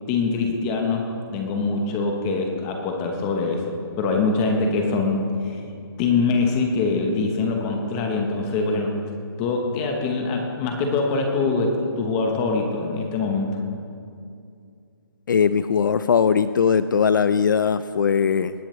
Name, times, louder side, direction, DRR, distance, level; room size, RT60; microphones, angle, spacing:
voice 1, 0.1-5.6 6.0-8.9 9.4-13.6, left 3 dB, 15° left, 2 dB, 0.9 m, -24 dB
voice 2, 15.3-18.5, left 6 dB, 55° left, 13 dB, 0.4 m, -20 dB
19.5 x 16.0 x 3.2 m, 2.4 s
hypercardioid pair, 170°, 13 cm